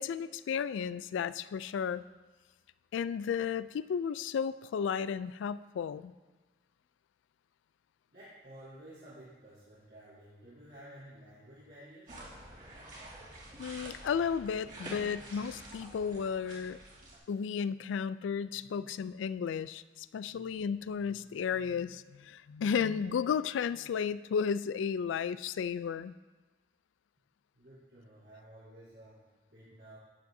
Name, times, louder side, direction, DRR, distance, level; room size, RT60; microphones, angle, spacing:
voice 1, 0.0-2.0 2.9-6.1 13.6-16.8 17.3-26.1, left 7 dB, 90° left, 16 dB, 0.3 m, -33 dB
voice 2, 8.1-12.2 27.5-30.0, right 1 dB, 65° right, -12 dB, 3.4 m, -53 dB
sound 1, 12.1-17.2, right 1 dB, 45° right, 2.6 m, -48 dB
12.0 x 9.5 x 2.7 m, 1.2 s
head